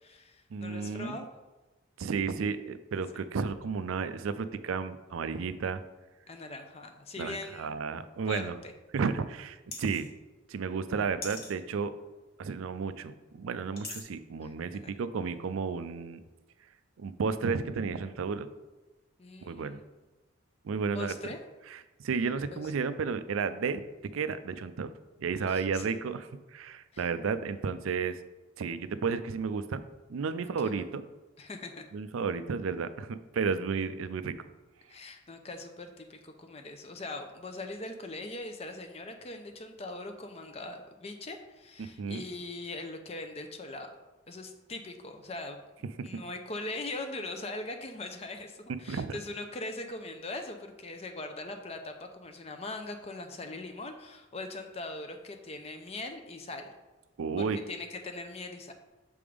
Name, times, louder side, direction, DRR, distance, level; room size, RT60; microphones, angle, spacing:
voice 1, 0.0-1.3 3.1-3.2 6.3-7.8 8.3-8.7 14.4-14.5 14.8-14.9 19.2-19.9 20.9-21.4 22.5-22.7 25.5-25.9 26.9-27.1 30.4-30.9 31.4-31.8 34.9-43.9 44.3-45.6 46.0-56.7 57.4-58.7, left 2 dB, 30° left, 6 dB, 0.5 m, -41 dB
voice 2, 0.5-1.2 2.0-5.8 7.2-8.5 8.9-10.1 10.5-11.9 12.4-16.2 17.0-18.5 19.4-19.8 20.6-21.1 21.7-24.9 25.2-28.2 28.6-29.8 30.1-31.0 31.9-34.4 41.8-42.2 46.0-46.1 48.9-49.2 57.2-57.6, right 5 dB, 85° right, 13 dB, 0.4 m, -32 dB
sound 1, 9.7-10.1 11.2-11.5 13.8-14.0, left 3 dB, 50° left, 1.2 m, -40 dB
6.9 x 3.5 x 5.0 m, 1.2 s
head